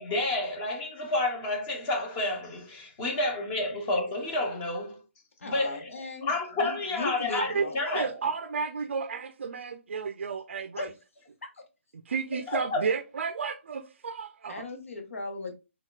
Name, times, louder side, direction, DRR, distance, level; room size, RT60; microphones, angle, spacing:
voice 1, 0.0-5.0 5.4-5.9 6.2-8.1 12.5-12.9, left 2 dB, 15° left, 0.6 m, -30 dB
voice 2, 5.4-7.7 10.8-10.9 11.4-11.5 14.5-15.5, left 3 dB, 85° left, 0.9 m, -37 dB
voice 3, 7.3-10.9 12.1-14.6, right 5 dB, 60° right, 0.4 m, -32 dB
4.1 x 2.2 x 2.3 m
hypercardioid pair, 175°, 7 cm